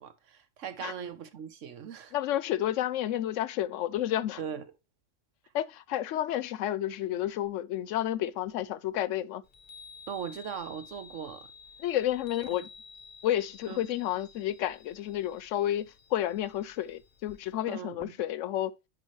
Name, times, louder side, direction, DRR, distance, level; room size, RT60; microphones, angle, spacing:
voice 1, 0.0-2.1 4.4-4.6 10.1-11.5 12.5-12.6 13.7-13.9 17.7-18.2, right 7 dB, 85° right, 1.3 m, -39 dB
voice 2, 2.1-4.4 5.5-9.4 11.8-12.7 13.2-18.7, left 12 dB, 85° left, 0.9 m, -31 dB
Chime, 9.4-17.6, left 5 dB, 50° left, 0.7 m, -52 dB
9.9 x 4.4 x 3.1 m
omnidirectional pair, 1.2 m